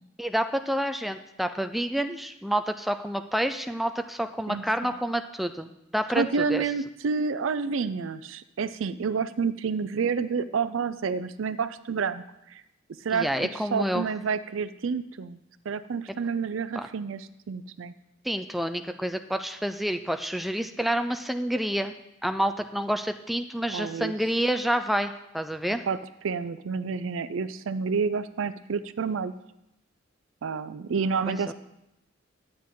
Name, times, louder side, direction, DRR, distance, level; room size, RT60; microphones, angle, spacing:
voice 1, 0.2-6.6 13.1-14.1 16.8-16.9 18.2-21.9 22.2-25.8 31.3-31.5, equal, ahead, 7 dB, 0.4 m, -28 dB
voice 2, 4.5-4.9 6.2-12.6 13.0-15.4 15.7-17.9 23.7-24.1 25.9-26.0 26.2-29.3 30.4-31.5, right 5 dB, 75° right, 14 dB, 0.5 m, -29 dB
10.5 x 8.7 x 3.7 m, 0.85 s
head